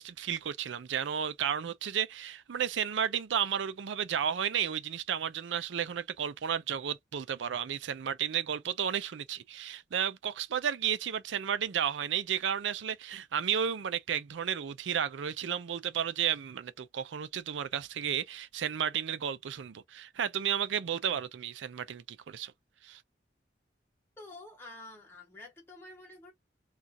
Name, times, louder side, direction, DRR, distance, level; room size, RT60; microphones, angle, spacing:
voice 1, 0.0-22.5 22.8-23.0, right 8 dB, 90° right, 0.4 m, -33 dB
voice 2, 24.2-26.3, left 2 dB, 15° left, 1.0 m, -49 dB
2.4 x 2.4 x 4.1 m
head